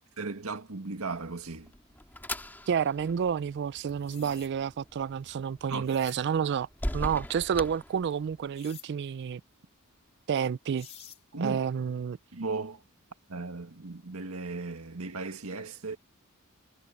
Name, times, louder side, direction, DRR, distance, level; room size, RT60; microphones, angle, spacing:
voice 1, 0.0-1.7 5.7-5.9 11.3-11.6 12.3-12.8 13.3-16.0, right 3 dB, 85° right, 1.7 m, -36 dB
sound 1, 1.4-8.6, left 1 dB, 10° left, 2.3 m, -41 dB
voice 2, 2.7-6.7 6.9-9.4 10.3-10.9 11.4-12.2, right 7 dB, 55° right, 0.3 m, -29 dB
sound 2, 3.9-4.5 5.7-6.2 8.5-8.9 10.4-10.5 10.8-11.2, left 8 dB, 30° left, 3.7 m, -49 dB
head